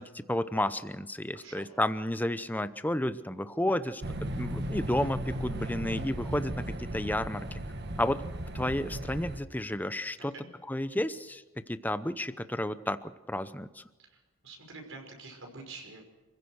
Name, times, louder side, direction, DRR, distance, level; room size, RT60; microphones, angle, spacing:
voice 1, 0.0-4.0 4.3-7.6 8.0-8.2 8.5-10.3 10.7-11.4 11.7-13.8, left 1 dB, 10° left, 12 dB, 0.7 m, -32 dB
voice 2, 1.3-1.7 10.2-10.5 14.0-14.2 14.4-16.0, right 3 dB, 65° right, 3 dB, 5.6 m, -47 dB
sound 1, 4.0-9.4, right 1 dB, 50° right, 1.5 m, -36 dB
28.5 x 16.0 x 6.5 m, 1.2 s
head